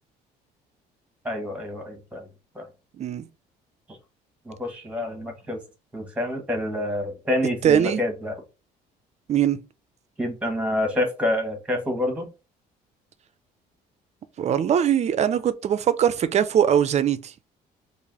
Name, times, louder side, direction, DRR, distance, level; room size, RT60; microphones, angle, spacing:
voice 1, 1.2-2.2 2.5-2.6 4.5-5.6 5.9-8.3 10.2-12.3, left 1 dB, 5° right, 1.2 m, -27 dB
voice 2, 3.0-3.3 7.6-8.0 9.3-9.6 14.4-17.3, right 9 dB, 40° right, 0.4 m, -21 dB
3.2 x 2.6 x 3.8 m
cardioid pair, 110°, 17 cm